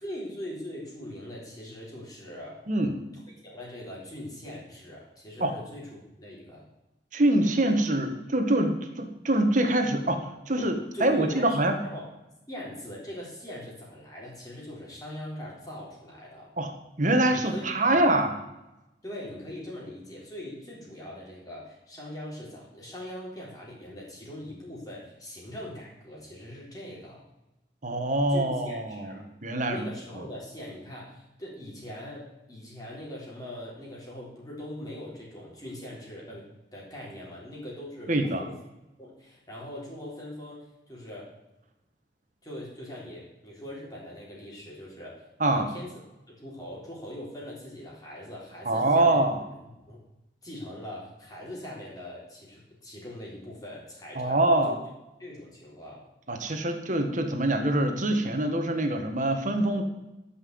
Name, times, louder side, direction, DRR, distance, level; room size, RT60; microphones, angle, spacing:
voice 1, 0.0-2.6 3.4-6.7 10.6-12.0 12.5-16.5 17.3-17.6 17.9-18.2 19.0-27.2 28.3-29.3 29.7-36.4 36.7-38.6 39.0-41.3 42.4-45.9 46.4-49.2 49.9-50.0 50.4-54.4 54.7-54.8 55.2-56.0, left 1 dB, 20° left, -4 dB, 3.7 m, -41 dB
voice 2, 2.7-3.0 5.4-5.5 7.1-11.8 16.6-16.7 17.0-18.3 27.8-29.9 30.1-30.2 38.1-38.5 45.4-45.7 48.6-49.4 54.1-54.8 56.3-59.8, right 1 dB, 45° right, 5 dB, 1.5 m, -25 dB
12.5 x 5.8 x 7.8 m, 0.95 s
head